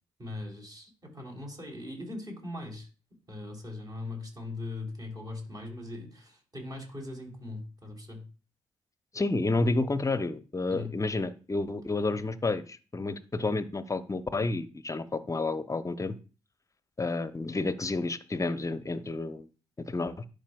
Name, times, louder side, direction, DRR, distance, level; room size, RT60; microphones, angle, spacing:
voice 1, 0.2-2.9 3.3-8.2 10.7-10.9, left 2 dB, 30° right, 0 dB, 3.3 m, -40 dB
voice 2, 9.1-16.2 17.0-19.5 19.9-20.2, left 3 dB, 25° left, 14 dB, 0.7 m, -30 dB
11.5 x 5.1 x 2.3 m, 0.34 s
hypercardioid pair, 40°, 13 cm